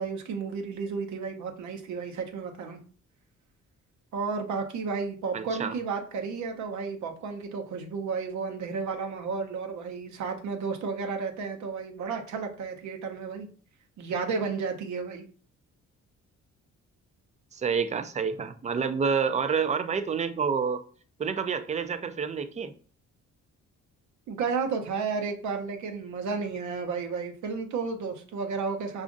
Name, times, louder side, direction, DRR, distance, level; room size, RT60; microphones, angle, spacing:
voice 1, 0.0-2.8 4.1-13.5 14.0-15.3 24.3-29.0, right 5 dB, 70° right, 0.8 m, -32 dB
voice 2, 5.3-5.7 17.5-20.8 21.2-22.7, right 6 dB, 25° right, 0.3 m, -28 dB
4.9 x 2.5 x 2.5 m
cardioid pair, 90°, 30 cm